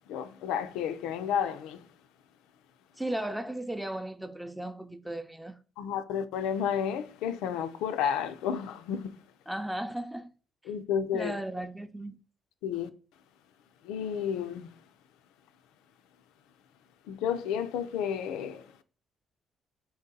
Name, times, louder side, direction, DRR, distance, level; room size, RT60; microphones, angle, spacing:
voice 1, 0.1-1.9 5.8-9.1 10.7-11.3 12.6-12.9 13.8-14.8 17.1-18.7, left 8 dB, 85° left, 0.3 m, -31 dB
voice 2, 3.0-5.6 9.5-10.3 11.1-12.2, right 1 dB, 5° right, 0.5 m, -36 dB
4.4 x 2.7 x 3.7 m
supercardioid pair, 65°, 0 cm